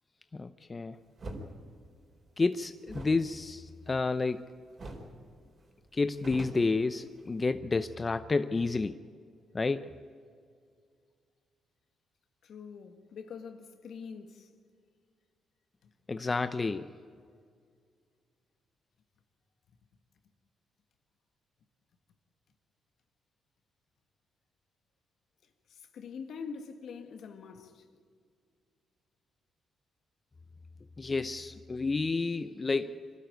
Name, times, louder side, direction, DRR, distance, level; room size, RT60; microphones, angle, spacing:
voice 1, 0.3-1.0 2.4-4.5 5.9-9.0 9.5-9.9 16.1-16.9 31.0-33.0, left 3 dB, 30° left, 0.7 m, -30 dB
sound 1, 1.2-1.5 2.8-4.4 4.8-5.1 5.4-5.5 5.9-7.4, right 1 dB, 50° right, 4.6 m, -44 dB
voice 2, 12.4-14.5 15.8-15.9 25.7-27.8, left 6 dB, 70° left, 1.8 m, -44 dB
25.0 x 12.5 x 9.3 m
supercardioid pair, 65°, 0 cm